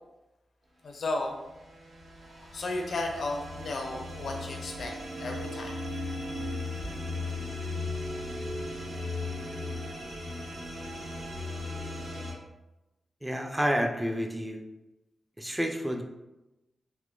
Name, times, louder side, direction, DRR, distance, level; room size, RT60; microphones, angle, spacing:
voice 1, 0.8-1.4 2.2-4.9 5.2-6.1, left 2 dB, 70° left, 1 dB, 0.6 m, -34 dB
sound 1, 1.3-12.3, left 2 dB, 80° right, 1.2 m, -37 dB
voice 2, 13.2-14.7 15.4-16.0, equal, 10° right, 3 dB, 0.3 m, -29 dB
3.6 x 2.8 x 2.4 m, 0.99 s
wide cardioid pair, 95°, 0 cm